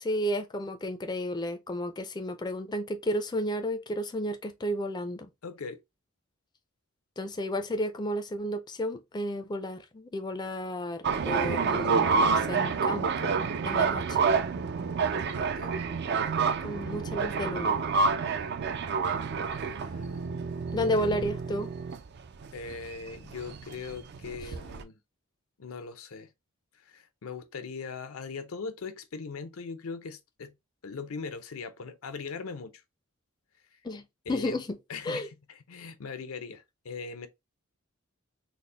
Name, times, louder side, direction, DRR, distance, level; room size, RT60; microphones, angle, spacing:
voice 1, 0.0-5.3 7.2-14.3 16.6-17.8 20.7-21.7 33.8-34.0 34.3-34.8 35.0-35.3, equal, 20° left, 0.4 m, -32 dB
voice 2, 5.4-5.8 15.6-15.9 18.2-18.5 19.6-20.2 20.8-21.2 22.5-25.0 25.6-26.3 26.7-30.5 30.8-32.8 33.7-33.8 34.3-34.6 34.9-37.3, left 4 dB, 85° left, 0.6 m, -40 dB
sound 1, 11.0-24.8, right 5 dB, 50° right, 0.4 m, -28 dB
4.1 x 2.1 x 3.2 m
head